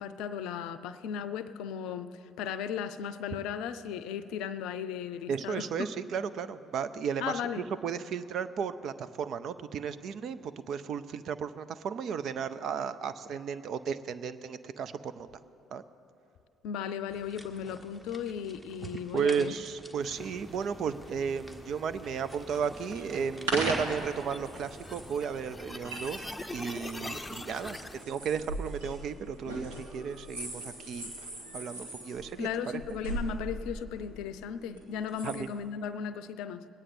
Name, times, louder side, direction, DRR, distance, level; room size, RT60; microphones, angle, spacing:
voice 1, 0.0-5.9 7.2-7.7 16.6-19.5 32.4-36.7, left 8 dB, 70° left, 12 dB, 0.5 m, -36 dB
voice 2, 5.3-15.3 15.7-15.8 19.1-27.8 28.1-31.1 31.5-32.8 35.2-35.5, right 6 dB, 55° right, 12 dB, 0.5 m, -34 dB
sound 1, 17.1-25.1, right 1 dB, 15° right, 1.4 m, -52 dB
sound 2, 20.0-28.0, left 2 dB, 10° left, 0.7 m, -45 dB
sound 3, 22.9-35.4, right 1 dB, 85° right, 1.7 m, -40 dB
21.0 x 9.0 x 4.3 m, 2.8 s
hypercardioid pair, 50°, 0 cm